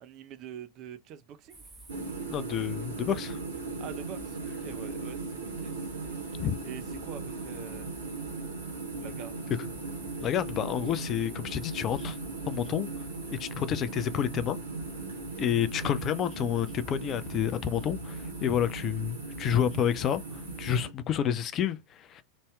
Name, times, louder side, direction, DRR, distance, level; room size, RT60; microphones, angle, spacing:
voice 1, 0.0-1.6 3.8-6.2 6.6-7.9 9.0-9.3, right 9 dB, 35° right, 0.5 m, -45 dB
sound 1, 1.5-20.8, right 2 dB, 15° right, 1.0 m, -50 dB
sound 2, 1.9-20.9, right 3 dB, 70° right, 0.9 m, -38 dB
voice 2, 2.3-3.4 6.4-6.6 10.2-12.2 12.5-12.9 13.3-14.6 15.4-22.2, left 9 dB, 30° left, 0.3 m, -29 dB
3.0 x 2.7 x 2.2 m
figure-of-eight pair, 90°, 0 cm